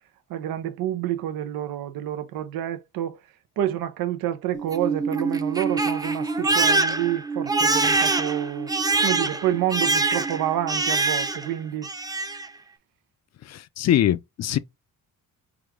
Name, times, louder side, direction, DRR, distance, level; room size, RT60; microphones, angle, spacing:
voice 1, 0.3-3.2 3.6-8.7 9.0-11.9, right 12 dB, 90° right, 0.7 m, -28 dB
Crying sobbing, 4.5-11.5 11.8-12.5, right 3 dB, 10° right, 0.4 m, -24 dB
voice 2, 13.5-14.6, left 11 dB, 50° left, 0.4 m, -23 dB
4.9 x 2.3 x 3.6 m
cardioid pair, 110°, 34 cm